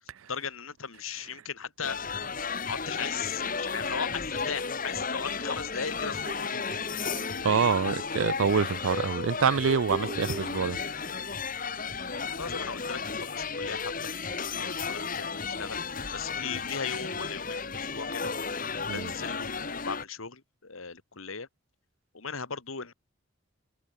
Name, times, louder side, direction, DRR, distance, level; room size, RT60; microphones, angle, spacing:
voice 1, 0.3-2.0 2.6-6.6 12.4-13.9 14.5-15.8 16.1-18.3 18.9-21.5 22.1-22.9, left 6 dB, 85° left, 2.0 m, -37 dB
sound 1, 1.8-20.0, left 5 dB, 40° left, 2.0 m, -34 dB
sound 2, 6.2-8.2 9.7-11.2, right 1 dB, 30° right, 4.9 m, -42 dB
voice 2, 7.4-10.8 18.9-19.1, right 6 dB, 80° right, 0.5 m, -26 dB
head